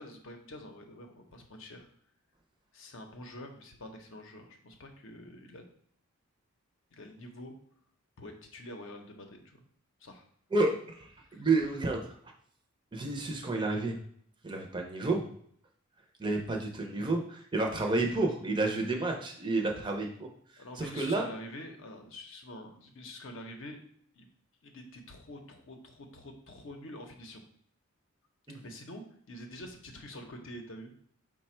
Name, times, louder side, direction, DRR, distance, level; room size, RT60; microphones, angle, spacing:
voice 1, 0.0-1.9 2.7-5.7 6.9-7.5 8.2-9.6 10.0-10.2 11.3-11.5 16.3-16.4 20.6-23.8 24.1-24.3 24.6-27.4 28.5-30.9, left 1 dB, 60° left, 4 dB, 0.6 m, -46 dB
voice 2, 10.5-12.1 12.9-14.0 14.4-15.3 16.2-20.3 20.8-21.3 28.5-28.6, right 2 dB, 20° right, 2 dB, 0.5 m, -30 dB
4.9 x 2.2 x 4.3 m, 0.64 s
head